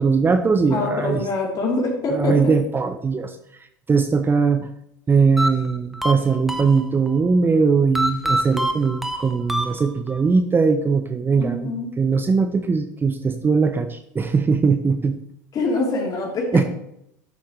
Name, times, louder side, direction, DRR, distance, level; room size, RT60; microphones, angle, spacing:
voice 1, 0.0-1.2 2.1-3.4 3.9-4.7 5.1-11.7 12.0-15.2 16.5-16.6, right 5 dB, 20° right, 8 dB, 0.8 m, -20 dB
voice 2, 0.7-2.5 11.4-11.9 15.5-16.7, left 2 dB, 40° left, -1 dB, 3.4 m, -24 dB
sound 1, 5.4-7.2 7.9-10.2, right 1 dB, ahead, 1.1 m, -25 dB
12.5 x 8.1 x 3.2 m, 0.77 s
hypercardioid pair, 85°, 10 cm